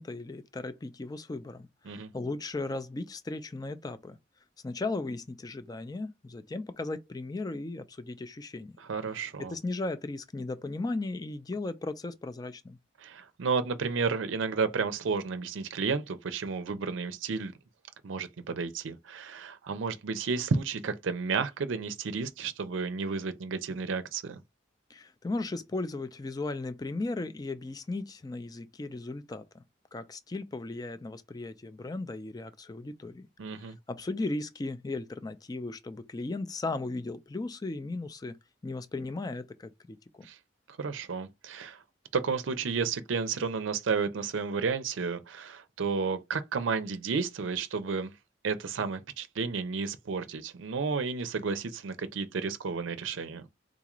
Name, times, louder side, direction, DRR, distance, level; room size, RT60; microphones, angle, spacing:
voice 1, 0.0-4.2 4.6-8.7 9.5-12.8 24.9-29.6 29.9-33.3 33.6-38.4 38.6-40.3, left 2 dB, 20° left, 0.3 m, -36 dB
voice 2, 8.8-9.5 13.0-17.5 18.0-24.4 33.4-33.8 40.2-40.4 40.7-41.8 42.1-48.1 48.4-53.4, right 5 dB, 80° right, 0.5 m, -32 dB
3.8 x 2.4 x 2.9 m
head